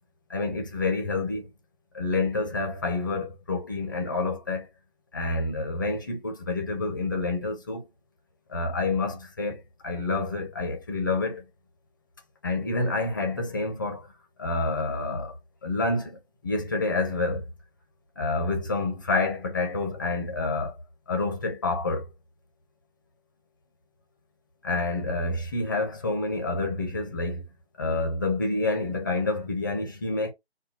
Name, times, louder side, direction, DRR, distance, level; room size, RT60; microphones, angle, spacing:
voice 1, 0.3-1.5 1.9-4.7 5.1-7.9 8.5-11.5 12.4-14.1 14.4-15.3 15.6-17.5 18.2-20.8 21.1-22.1 24.6-27.4 27.8-30.3, left 3 dB, 20° left, 0.6 m, -28 dB
4.2 x 2.2 x 4.3 m
hypercardioid pair, 165°, 31 cm